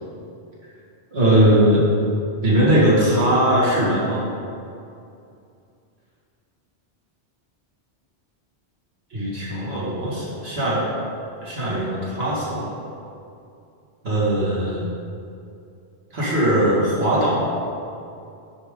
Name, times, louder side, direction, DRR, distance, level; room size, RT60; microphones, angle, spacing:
voice 1, 1.1-1.8 2.4-4.2 9.1-10.8 11.4-12.7 14.0-14.9 16.1-17.4, right 1 dB, 65° right, -8 dB, 2.3 m, -20 dB
9.4 x 5.0 x 3.8 m, 2.6 s
omnidirectional pair, 1.1 m